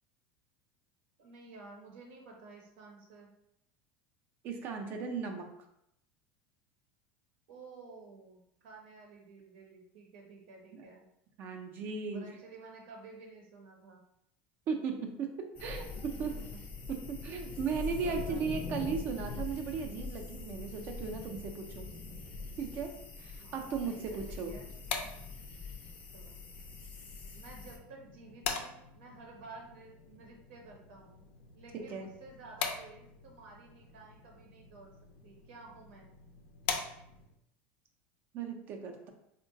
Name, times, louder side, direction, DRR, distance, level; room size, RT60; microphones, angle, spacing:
voice 1, 1.2-3.3 7.5-11.1 12.1-14.0 16.2-16.6 17.7-18.7 23.4-24.7 25.0-25.1 26.1-26.4 27.3-31.2 31.5-35.0 35.2-36.1, right 3 dB, 75° right, 0 dB, 0.8 m, -52 dB
voice 2, 4.4-5.5 10.7-10.9 11.4-12.3 14.7-16.4 16.9-21.9 22.6-24.5 31.7-32.1 38.3-39.1, right 5 dB, 35° right, 4 dB, 0.4 m, -37 dB
sound 1, 15.6-27.8, left 3 dB, 25° left, 0.5 m, -43 dB
sound 2, 24.5-37.4, left 6 dB, 85° left, 0.5 m, -43 dB
3.7 x 2.1 x 2.7 m, 0.77 s
supercardioid pair, 165°, 6 cm